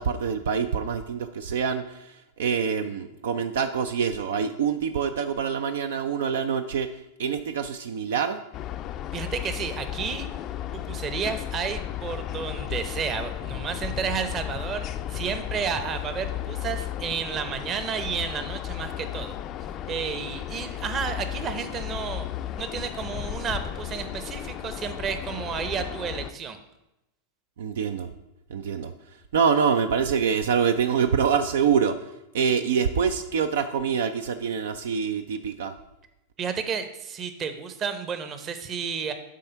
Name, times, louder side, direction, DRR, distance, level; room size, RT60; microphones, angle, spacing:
voice 1, 0.0-1.8 2.4-6.9 7.2-8.4 27.6-28.1 28.5-28.9 29.3-31.9 32.3-35.7, right 6 dB, 75° right, 9 dB, 0.4 m, -25 dB
sound 1, 8.5-26.3, left 12 dB, 40° left, 0.4 m, -34 dB
voice 2, 9.1-10.3 10.7-19.4 19.9-22.3 22.6-26.6 36.4-39.1, right 6 dB, 35° right, 9 dB, 0.8 m, -31 dB
7.6 x 3.6 x 5.6 m, 0.93 s
hypercardioid pair, 100°, 0 cm